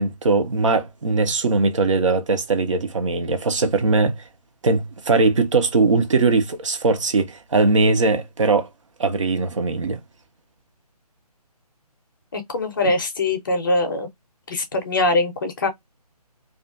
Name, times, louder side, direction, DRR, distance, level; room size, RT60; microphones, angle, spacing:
voice 1, 0.0-4.2 4.6-8.7 9.0-10.0 12.8-12.9, right 3 dB, 50° right, 0.6 m, -20 dB
voice 2, 12.3-14.1 14.5-15.7, left 2 dB, 30° left, 0.5 m, -22 dB
2.4 x 2.3 x 2.4 m
figure-of-eight pair, 150°, 20 cm